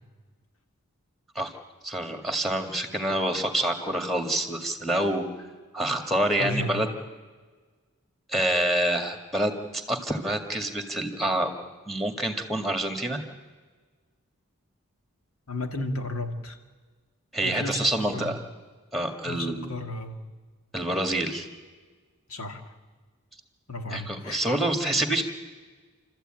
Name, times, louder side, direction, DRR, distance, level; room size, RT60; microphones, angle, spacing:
voice 1, 1.8-5.2 5.7-6.9 8.3-11.5 11.9-13.2 17.3-18.4 18.9-19.7 20.7-21.5 23.9-25.2, right 1 dB, ahead, 5 dB, 1.9 m, -27 dB
voice 2, 6.4-6.9 15.5-16.6 17.4-18.3 19.3-20.2 22.3-22.6 23.7-24.4, left 2 dB, 85° left, 5 dB, 2.1 m, -33 dB
28.5 x 13.5 x 9.0 m, 1.4 s
head